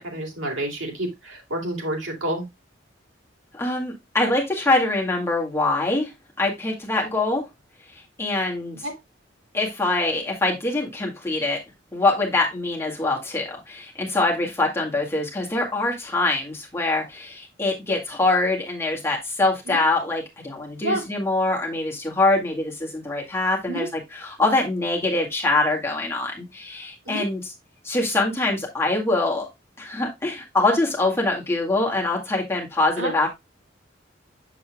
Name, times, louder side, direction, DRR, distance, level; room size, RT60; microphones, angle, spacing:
voice 1, 0.0-2.4 8.8-8.9 19.7-19.8 20.8-21.0 23.7-23.9 27.1-27.3 33.0-33.1, right 1 dB, 90° right, 1 dB, 3.0 m, -29 dB
voice 2, 3.5-6.1 6.4-7.4 8.2-8.8 9.5-11.6 11.9-27.5 27.8-29.5 29.8-33.3, left 2 dB, 15° left, -1 dB, 2.0 m, -24 dB
7.3 x 7.3 x 2.2 m, 0.20 s
head